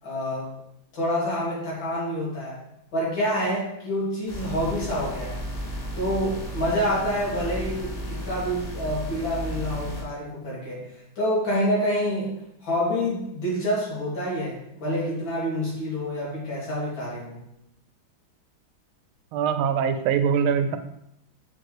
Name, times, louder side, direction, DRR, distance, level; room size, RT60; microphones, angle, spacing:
voice 1, 0.0-0.5 0.9-2.6 2.9-5.4 6.0-12.3 12.6-17.4, equal, 65° left, -6 dB, 3.0 m, -27 dB
sound 1, 4.3-10.0, equal, 90° left, 3.1 m, -34 dB
voice 2, 19.3-20.8, right 7 dB, 90° right, 8 dB, 1.4 m, -23 dB
6.7 x 4.5 x 3.1 m, 0.77 s
omnidirectional pair, 2.2 m